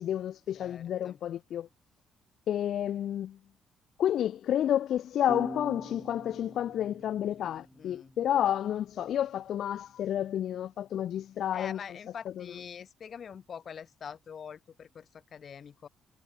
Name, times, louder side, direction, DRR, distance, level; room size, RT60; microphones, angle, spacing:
voice 1, 0.0-1.7 2.5-3.4 4.0-11.8 12.4-12.5, left 10 dB, 70° left, 0.8 m, -30 dB
voice 2, 0.5-1.2 7.4-8.1 11.5-15.9, left 7 dB, 50° left, 4.7 m, -45 dB
sound 1, 5.3-8.7, right 1 dB, 5° right, 2.0 m, -44 dB
cardioid pair, 90°, 0 cm